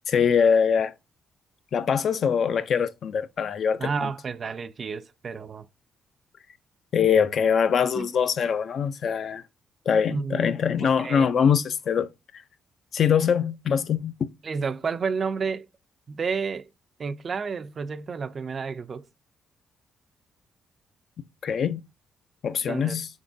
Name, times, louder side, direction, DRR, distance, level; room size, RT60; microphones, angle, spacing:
voice 1, 0.1-0.9 1.7-4.1 6.9-9.4 9.9-12.4 12.9-14.3 21.4-21.8 22.4-23.1, left 7 dB, 60° left, 0.4 m, -23 dB
voice 2, 3.8-5.7 8.0-8.1 10.1-10.5 10.8-11.3 14.4-15.7 16.1-16.7 17.0-19.0 22.7-23.0, right 5 dB, 45° right, 0.3 m, -31 dB
3.9 x 3.6 x 2.5 m
cardioid pair, 90°, 0 cm